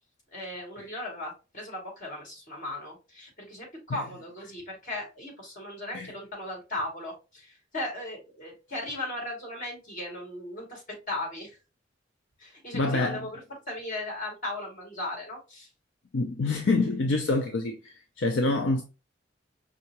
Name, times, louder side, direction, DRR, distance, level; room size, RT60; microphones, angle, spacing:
voice 1, 0.3-11.6 12.4-13.4 13.7-15.7, left 1 dB, 45° left, 2.2 m, -37 dB
voice 2, 12.7-13.3 16.1-18.8, left 3 dB, 70° left, 0.5 m, -26 dB
5.4 x 2.4 x 2.8 m
head